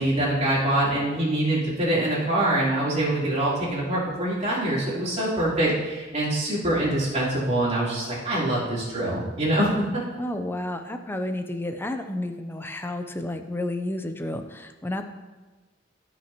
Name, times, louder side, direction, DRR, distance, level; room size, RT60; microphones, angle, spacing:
voice 1, 0.0-10.0, right 1 dB, 35° right, -8 dB, 3.5 m, -24 dB
voice 2, 10.2-15.1, left 1 dB, 10° left, 7 dB, 0.6 m, -31 dB
18.0 x 6.1 x 3.0 m, 1.2 s
head